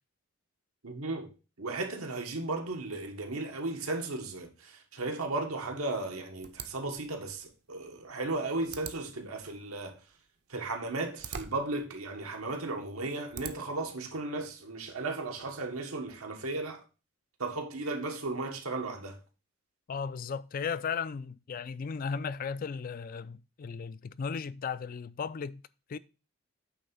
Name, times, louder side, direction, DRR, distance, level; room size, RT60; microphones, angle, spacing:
voice 1, 0.8-10.0 10.5-16.8 17.4-19.2, right 2 dB, 90° right, 1.4 m, -35 dB
sound 1, 6.4-13.9, right 7 dB, 50° right, 0.7 m, -47 dB
voice 2, 19.9-25.6 25.9-26.0, left 6 dB, 40° left, 0.3 m, -36 dB
8.7 x 3.4 x 5.5 m
head